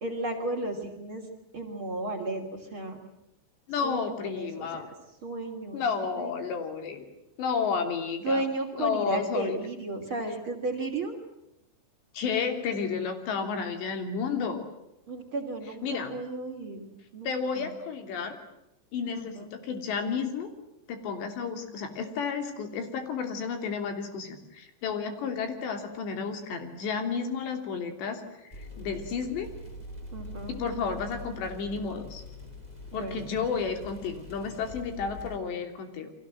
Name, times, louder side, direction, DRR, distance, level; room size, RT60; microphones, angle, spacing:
voice 1, 0.0-1.3 1.5-3.0 3.8-4.9 5.2-5.8 6.1-6.3 8.2-11.2 15.1-17.7 19.1-19.5 30.1-30.6 32.9-33.2, right 2 dB, 35° right, 2 dB, 3.2 m, -34 dB
voice 2, 3.7-4.9 5.7-7.1 7.4-8.4 8.7-9.6 12.1-14.6 15.8-16.1 17.2-18.4 18.9-20.5 20.9-29.5 30.5-32.2 32.9-36.1, left 5 dB, 75° left, 7 dB, 5.2 m, -32 dB
sound 1, 28.5-35.4, left 2 dB, 10° left, 4.0 m, -44 dB
30.0 x 24.0 x 7.6 m, 0.85 s
omnidirectional pair, 5.1 m